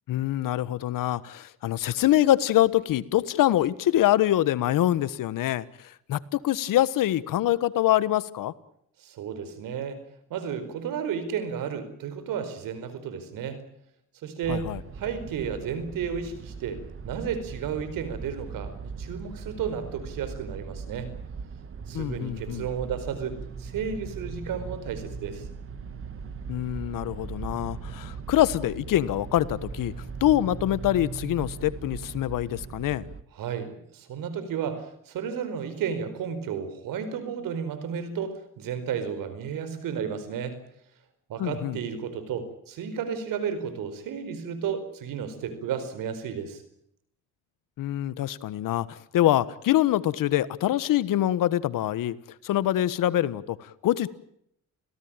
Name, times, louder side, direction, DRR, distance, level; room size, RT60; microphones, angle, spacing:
voice 1, 0.1-8.5 14.5-14.8 21.9-22.7 26.5-29.9 30.2-33.1 41.4-41.8 47.8-52.1 52.4-54.1, left 13 dB, 75° left, 17 dB, 1.4 m, -25 dB
voice 2, 9.0-10.0 10.3-13.6 14.2-21.1 21.9-25.5 33.3-40.6 41.3-46.6, right 7 dB, 80° right, 12 dB, 4.7 m, -33 dB
sound 1, 14.4-33.2, right 5 dB, 40° right, 1.9 m, -39 dB
28.5 x 17.0 x 9.0 m, 0.72 s
cardioid pair, 85°, 33 cm